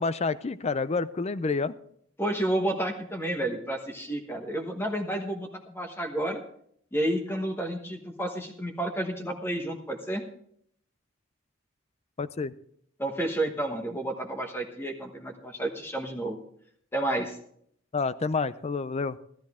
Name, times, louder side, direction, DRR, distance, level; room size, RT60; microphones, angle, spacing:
voice 1, 0.0-1.7 12.2-12.5 17.9-19.2, left 4 dB, 35° left, 16 dB, 0.5 m, -28 dB
voice 2, 2.2-6.4 6.9-10.2 13.0-16.4 16.9-17.4, right 1 dB, 10° left, 3 dB, 1.2 m, -30 dB
14.0 x 13.0 x 3.6 m, 0.66 s
head